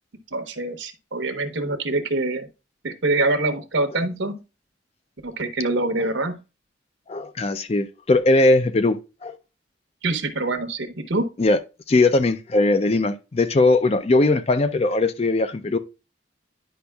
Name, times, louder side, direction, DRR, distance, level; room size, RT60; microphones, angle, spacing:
voice 1, 0.3-2.5 2.8-4.4 5.2-6.4 10.0-11.3, right 2 dB, 75° right, 0.9 m, -25 dB
voice 2, 7.1-9.4 11.4-11.6 11.9-15.8, left 2 dB, 30° left, 0.4 m, -20 dB
10.0 x 5.2 x 2.3 m
head